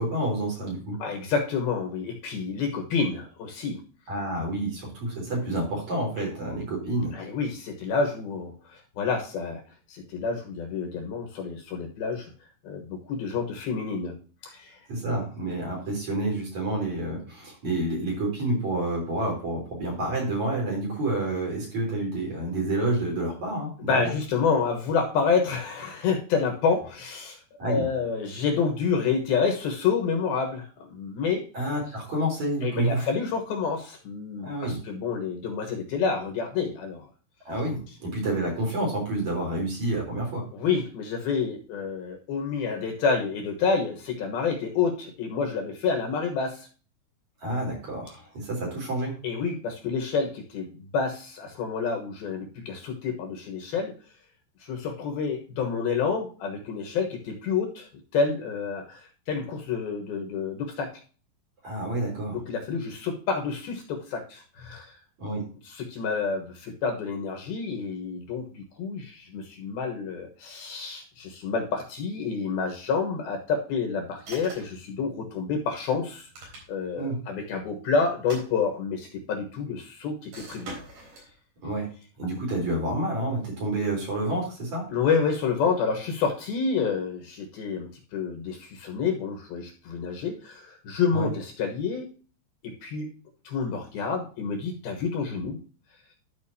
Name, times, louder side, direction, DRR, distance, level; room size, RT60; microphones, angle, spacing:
voice 1, 0.0-1.0 4.1-7.1 14.9-24.1 27.6-27.9 31.5-33.1 34.4-34.8 37.4-40.4 47.4-49.2 61.6-62.4 65.2-65.4 76.9-77.2 81.6-81.9 82.2-84.9 91.1-91.3, right 1 dB, 45° right, -2 dB, 4.7 m, -29 dB
voice 2, 1.0-3.8 6.2-6.3 7.1-9.6 9.9-12.3 12.6-14.2 14.4-14.8 23.8-27.4 27.7-31.4 32.6-37.1 40.5-46.7 49.2-53.9 54.6-61.0 62.3-64.9 65.6-80.7 84.9-92.1 92.6-93.1 93.4-95.6, left 5 dB, 65° left, 3 dB, 2.9 m, -28 dB
sound 1, 74.2-74.8 76.1-77.0 78.1-79.1 80.3-81.3, right 2 dB, 60° right, 5.5 m, -43 dB
13.0 x 5.8 x 2.8 m, 0.38 s
omnidirectional pair, 5.0 m